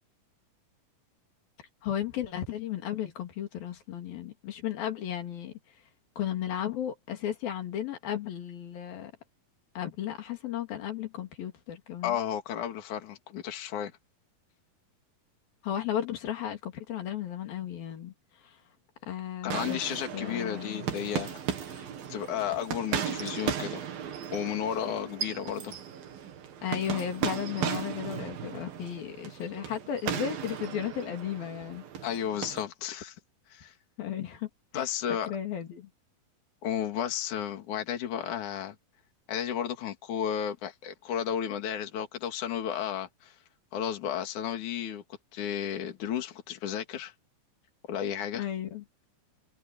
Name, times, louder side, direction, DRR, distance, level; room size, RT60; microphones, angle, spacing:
voice 1, 1.8-5.5 6.2-9.1 9.8-12.2 15.6-18.1 18.4-18.6 19.1-19.8 20.1-20.9 26.6-31.8 34.0-34.9 35.3-35.9 48.3-48.8, left 10 dB, 85° left, 4.4 m, -34 dB
voice 2, 12.0-13.9 19.4-21.4 21.7-23.9 24.3-25.8 32.0-33.2 33.5-33.7 34.7-35.3 36.6-38.8 39.3-43.4 43.7-45.0 45.3-47.1 47.9-48.5, left 9 dB, 60° left, 3.6 m, -33 dB
sound 1, 19.5-32.7, right 8 dB, 85° right, 4.1 m, -36 dB
omnidirectional pair, 4.1 m